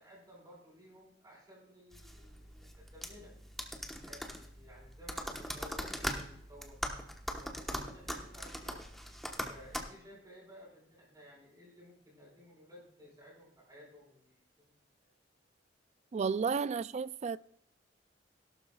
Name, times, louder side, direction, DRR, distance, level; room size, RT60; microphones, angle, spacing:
voice 1, 0.0-3.4 4.0-6.8 7.4-8.8 9.5-15.1 16.5-16.8, equal, 20° right, 5.4 m, -56 dB
sound 1, 1.9-9.8, equal, ahead, 1.1 m, -41 dB
voice 2, 16.1-17.4, right 5 dB, 35° right, 0.3 m, -32 dB
17.0 x 12.0 x 2.3 m
head